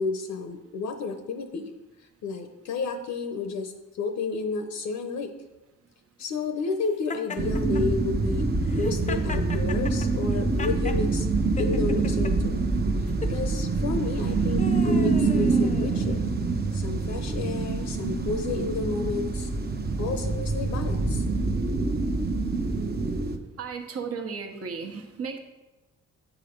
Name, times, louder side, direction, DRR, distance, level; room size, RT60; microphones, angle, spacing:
voice 1, 0.0-1.7 2.2-3.7 4.0-5.3 6.2-11.3 11.6-12.6 13.3-16.2 16.7-19.5 20.0-21.2, left 4 dB, 70° left, 7 dB, 0.8 m, -31 dB
Laughter, 7.1-7.8 8.6-11.0 11.6-12.3 13.1-13.4 14.1-16.3, left 4 dB, 25° left, 0.6 m, -37 dB
sound 1, 7.4-23.4, right 3 dB, 30° right, 0.8 m, -26 dB
voice 2, 23.6-25.4, right 5 dB, 50° right, 4 dB, 1.1 m, -34 dB
7.9 x 4.9 x 5.2 m, 1.1 s
cardioid pair, 90°, 30 cm